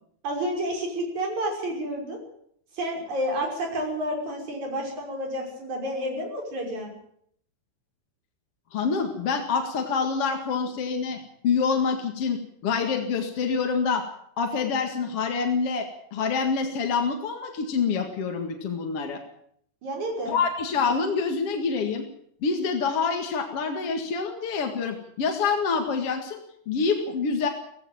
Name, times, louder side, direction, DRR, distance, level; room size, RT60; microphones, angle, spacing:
voice 1, 0.2-2.2 2.7-6.9 19.8-20.4, equal, 45° right, 2 dB, 7.1 m, -30 dB
voice 2, 8.7-11.2 11.4-14.0 14.4-19.2 20.3-22.0 22.4-26.4 26.7-27.5, left 5 dB, 45° left, 4 dB, 2.3 m, -26 dB
18.0 x 16.0 x 9.1 m, 0.67 s
omnidirectional pair, 4.7 m